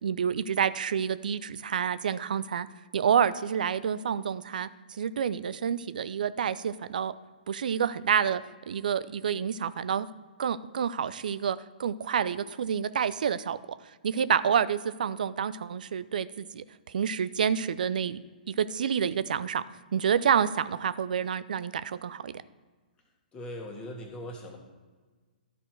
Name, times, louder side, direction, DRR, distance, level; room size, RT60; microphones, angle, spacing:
voice 1, 0.0-2.7 2.9-4.7 5.0-7.1 7.5-8.4 8.7-10.1 10.4-13.6 14.0-16.6 16.9-18.2 18.5-19.6 19.9-22.3, right 7 dB, 65° right, 15 dB, 0.4 m, -28 dB
voice 2, 23.3-24.6, left 1 dB, 20° left, 1 dB, 1.7 m, -40 dB
12.5 x 4.4 x 4.6 m, 1.4 s
figure-of-eight pair, 120°, 5 cm